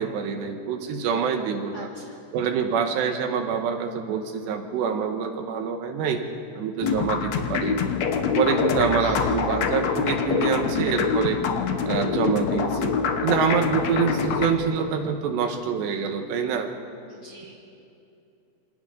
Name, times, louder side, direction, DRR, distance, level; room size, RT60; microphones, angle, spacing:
voice 1, 0.0-1.9 2.3-6.2 6.6-7.9 8.4-11.4 11.9-12.9 13.2-16.7, right 6 dB, 80° right, 5 dB, 3.4 m, -26 dB
voice 2, 1.7-2.2 9.0-9.3 17.1-17.5, equal, 45° left, -2 dB, 1.8 m, -45 dB
sound 1, 6.8-14.5, left 6 dB, 80° left, 1.6 m, -25 dB
27.0 x 26.5 x 3.8 m, 2.6 s
omnidirectional pair, 4.9 m